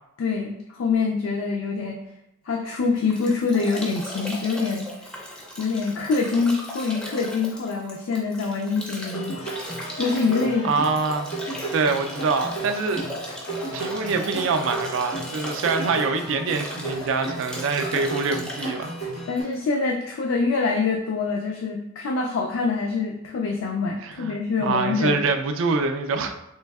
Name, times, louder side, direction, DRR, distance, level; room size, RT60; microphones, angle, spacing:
voice 1, 0.2-2.0 2.5-4.9 5.6-9.4 10.0-10.7 19.3-25.2, left 4 dB, 75° left, 0 dB, 0.3 m, -25 dB
Bathtub (filling or washing) / Drip / Trickle dribble, 2.7-19.9, equal, 5° left, 0.4 m, -37 dB
sound 1, 9.1-19.4, right 2 dB, 90° left, 1.5 m, -34 dB
voice 2, 10.6-11.3 11.7-13.0 13.7-18.9 24.0-26.3, right 4 dB, 65° right, 6 dB, 0.3 m, -25 dB
3.3 x 3.1 x 2.3 m, 0.85 s
head